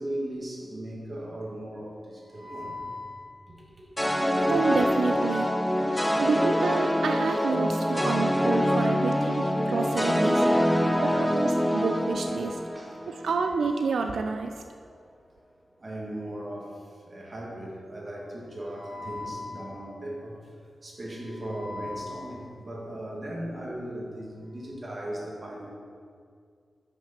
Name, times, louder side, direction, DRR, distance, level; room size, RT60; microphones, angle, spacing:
voice 1, 0.0-3.6 5.1-5.6 10.5-11.4 12.7-13.9 15.8-16.8 17.1-20.4 20.8-25.7, equal, 30° right, -3 dB, 1.7 m, -37 dB
sound 1, 4.0-13.3, equal, 5° left, 0.4 m, -25 dB
voice 2, 4.5-5.7 6.2-10.4 11.0-12.6 13.1-14.5, right 4 dB, 90° right, 5 dB, 0.4 m, -29 dB
8.4 x 6.2 x 5.8 m, 2.2 s
wide cardioid pair, 180°, 0 cm